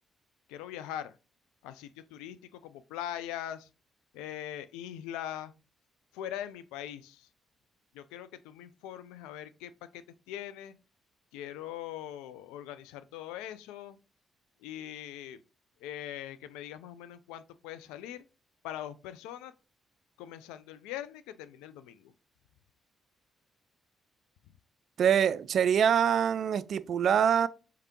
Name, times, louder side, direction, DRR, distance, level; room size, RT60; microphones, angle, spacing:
voice 1, 0.5-1.2 1.6-3.7 4.1-5.5 6.1-7.3 7.9-10.7 11.3-14.0 14.6-15.4 15.8-18.2 18.6-19.5 20.2-22.1, left 11 dB, 85° left, 0.3 m, -41 dB
voice 2, 25.0-27.5, right 8 dB, 65° right, 0.3 m, -24 dB
4.7 x 3.4 x 2.9 m
hypercardioid pair, 45°, 0 cm